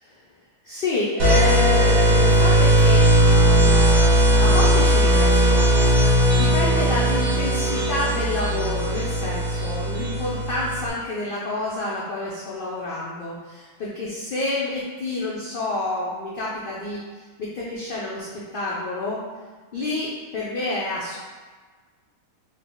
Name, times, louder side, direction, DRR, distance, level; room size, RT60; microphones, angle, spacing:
voice 1, 0.6-3.8 4.4-5.7 6.4-19.2 19.7-21.2, left 2 dB, 90° left, -6 dB, 0.4 m, -28 dB
sound 1, 1.2-10.9, right 1 dB, 70° right, 1.1 m, -18 dB
3.6 x 2.0 x 3.7 m, 1.4 s
omnidirectional pair, 1.5 m